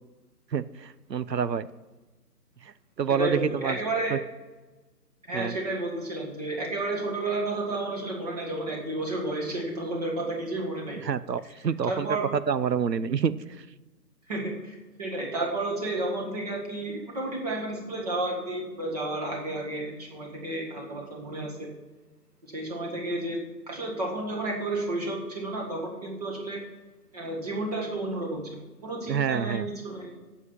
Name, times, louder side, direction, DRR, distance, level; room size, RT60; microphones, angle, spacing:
voice 1, 0.5-1.7 2.6-2.7 3.0-3.8 4.1-4.2 5.3-5.6 11.0-12.1 12.5-13.6 29.1-29.7, right 7 dB, 75° right, 16 dB, 0.7 m, -27 dB
voice 2, 3.2-4.2 5.3-11.0 11.8-12.3 14.3-21.7 22.5-23.4 23.7-26.6 27.1-28.5 28.8-30.1, right 2 dB, 25° right, -1 dB, 1.7 m, -31 dB
9.5 x 7.2 x 7.3 m, 1.2 s
figure-of-eight pair, 155°, 50 cm